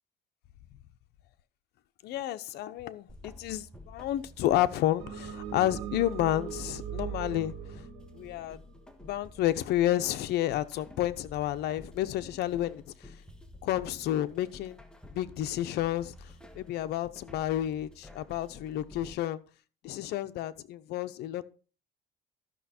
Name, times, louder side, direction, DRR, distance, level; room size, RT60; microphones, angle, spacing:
voice 1, 2.0-7.8 8.1-8.6 9.0-13.1 13.6-14.8 15.1-19.4 19.8-21.5, left 13 dB, 75° left, 0.8 m, -31 dB
sound 1, 3.1-19.1, left 1 dB, 5° left, 1.4 m, -51 dB
sound 2, 5.0-9.4, right 9 dB, 75° right, 1.7 m, -40 dB
12.5 x 6.2 x 4.3 m
cardioid pair, 110°, 17 cm